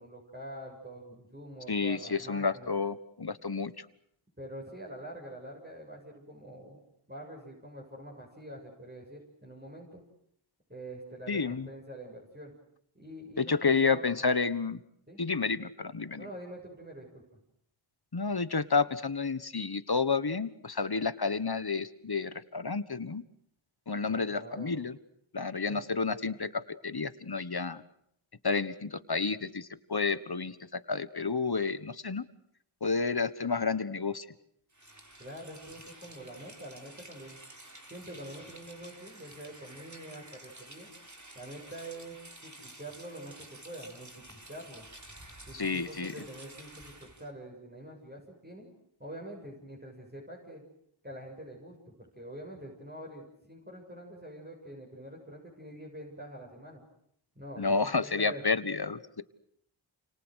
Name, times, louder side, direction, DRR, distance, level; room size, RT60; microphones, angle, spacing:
voice 1, 0.0-2.8 4.4-6.8 7.1-10.0 10.7-12.5 13.0-14.1 15.1-15.2 16.2-17.2 24.1-24.7 25.7-25.8 35.2-37.4 37.9-40.9 41.3-44.9 45.5-48.7 49.0-50.6 51.0-56.8 57.4-58.4, right 1 dB, 20° right, -2 dB, 7.2 m, -45 dB
voice 2, 1.7-3.8 11.3-11.7 13.4-14.8 15.2-16.3 18.1-23.2 23.9-25.0 25.3-27.8 28.4-32.2 32.8-34.3 45.5-46.1 57.6-59.2, left 4 dB, 50° left, 14 dB, 1.4 m, -30 dB
Rain, 34.7-47.3, right 1 dB, 35° right, 3.9 m, -51 dB
29.0 x 27.5 x 6.5 m, 0.71 s
wide cardioid pair, 40°, 50 cm